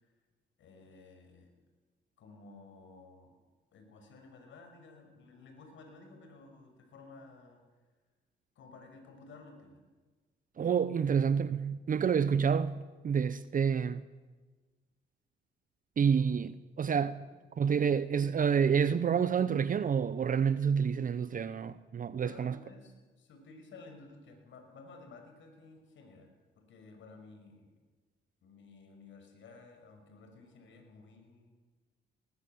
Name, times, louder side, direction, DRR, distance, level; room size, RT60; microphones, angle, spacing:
voice 1, 0.6-1.5 2.2-3.3 3.7-7.6 8.6-9.8 10.9-11.1 22.2-26.3 26.6-27.7 28.4-31.5, left 3 dB, 75° left, 5.9 m, -54 dB
voice 2, 10.6-14.0 16.0-17.2 17.6-22.6, right 7 dB, 45° right, 0.8 m, -28 dB
20.5 x 20.0 x 8.0 m
cardioid pair, 90°, 20 cm